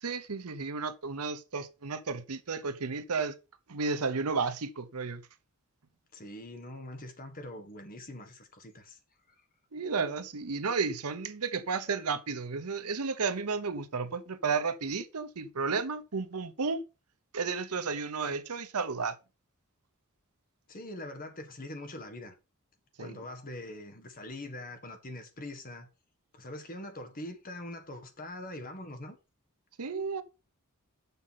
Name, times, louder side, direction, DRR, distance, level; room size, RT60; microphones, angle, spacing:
voice 1, 0.0-3.3 3.7-5.2 9.7-16.8 17.3-19.1 23.0-23.2 29.8-30.2, right 4 dB, 85° right, 0.9 m, -32 dB
voice 2, 6.1-9.0 20.7-22.3 23.0-25.9 26.3-29.2, left 1 dB, 40° left, 1.7 m, -43 dB
6.9 x 5.5 x 5.8 m
head